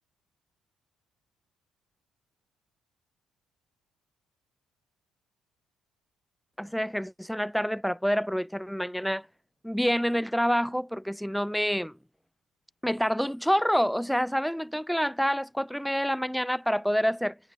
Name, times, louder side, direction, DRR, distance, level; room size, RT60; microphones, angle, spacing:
voice 1, 6.6-9.3 9.6-11.9 12.8-17.4, equal, ahead, 0.7 m, -27 dB
figure-of-eight pair, 45°, 0 cm